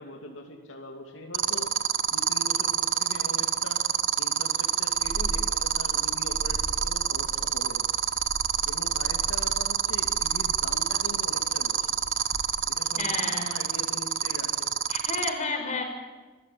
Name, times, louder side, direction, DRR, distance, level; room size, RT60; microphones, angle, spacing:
voice 1, 0.0-1.8 2.1-3.9 4.2-7.9 8.6-11.9 12.7-14.7, left 1 dB, 90° left, 2 dB, 2.8 m, -42 dB
sound 1, 1.3-15.3, right 9 dB, 85° right, 1.2 m, -25 dB
Purr, 4.9-13.0, right 1 dB, 20° right, 1.3 m, -39 dB
voice 2, 13.0-13.6 14.9-15.8, left 3 dB, 40° left, 3 dB, 5.2 m, -31 dB
26.0 x 15.0 x 8.6 m, 1.3 s
head